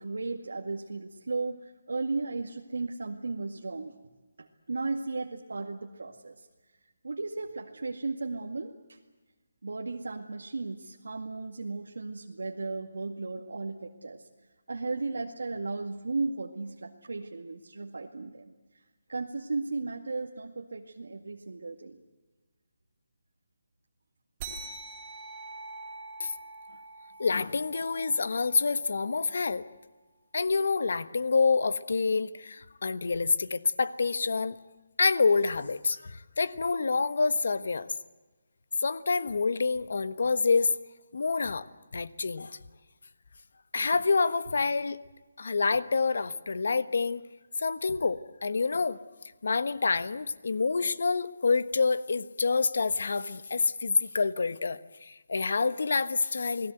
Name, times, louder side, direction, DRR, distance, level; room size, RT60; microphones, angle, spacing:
voice 1, 0.0-4.0 4.4-6.3 7.0-9.0 9.6-14.2 14.7-18.5 19.1-22.0, right 3 dB, 85° right, 1 dB, 2.1 m, -35 dB
sound 1, 24.4-29.3, right 3 dB, 15° right, 3.8 m, -45 dB
voice 2, 27.2-29.6 30.3-34.6 35.0-37.9 38.8-40.7 41.1-41.7 41.9-42.6 43.7-45.0 45.4-47.2 47.6-49.0 49.4-56.7, left 4 dB, 60° left, 15 dB, 1.3 m, -27 dB
29.0 x 20.0 x 8.0 m, 1.2 s
hypercardioid pair, 175°, 0 cm